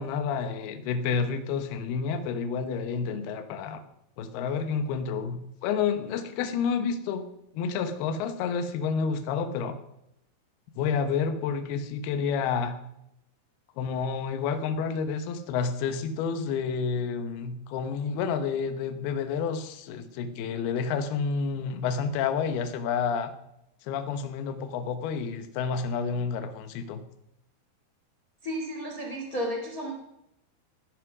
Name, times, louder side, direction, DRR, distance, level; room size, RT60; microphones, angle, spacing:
voice 1, 0.0-3.8 4.2-7.2 7.5-9.8 10.8-12.8 13.8-23.3 23.8-27.0, left 6 dB, 70° left, 8 dB, 2.6 m, -29 dB
voice 2, 28.4-29.9, equal, 55° left, 0 dB, 0.9 m, -32 dB
16.0 x 10.5 x 6.1 m, 0.82 s
omnidirectional pair, 5.8 m